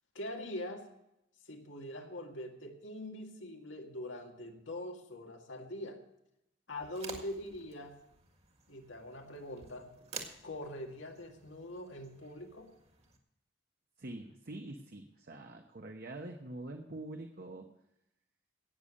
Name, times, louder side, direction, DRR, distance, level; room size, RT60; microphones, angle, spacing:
voice 1, 0.1-0.9 1.5-6.0 6.7-7.9 8.7-9.9 10.4-12.7, left 1 dB, 90° left, 2 dB, 2.1 m, -43 dB
sound 1, 6.8-13.2, right 4 dB, 35° right, 1.8 m, -51 dB
voice 2, 14.0-17.7, right 2 dB, 55° right, 4 dB, 1.1 m, -45 dB
17.5 x 7.0 x 6.4 m, 0.84 s
head